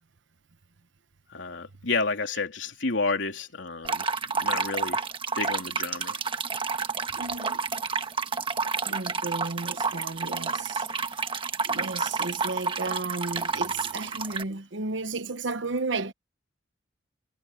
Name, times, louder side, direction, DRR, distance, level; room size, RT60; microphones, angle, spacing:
voice 1, 1.3-4.0 4.4-5.0 5.4-6.2, left 3 dB, 80° left, 2.9 m, -30 dB
sound 1, 3.8-14.4, right 4 dB, 30° right, 1.3 m, -30 dB
voice 2, 7.2-7.7 8.9-10.9 11.6-16.1, right 3 dB, 75° right, 1.1 m, -33 dB
head